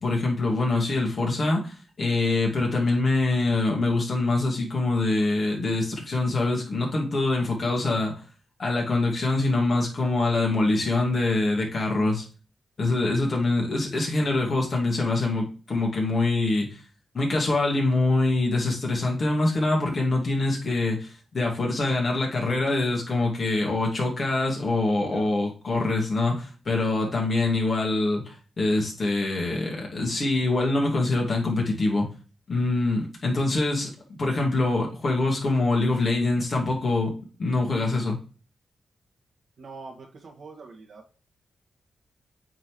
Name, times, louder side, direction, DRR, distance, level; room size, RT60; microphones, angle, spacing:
voice 1, 0.0-8.2 8.6-12.2 12.8-16.8 17.1-32.1 32.5-33.9 34.2-37.1 37.4-38.2, left 2 dB, 55° left, -1 dB, 2.4 m, -24 dB
voice 2, 39.6-41.1, right 4 dB, 70° right, 0 dB, 1.9 m, -43 dB
8.4 x 3.8 x 3.2 m, 0.37 s
supercardioid pair, 40°, 0 cm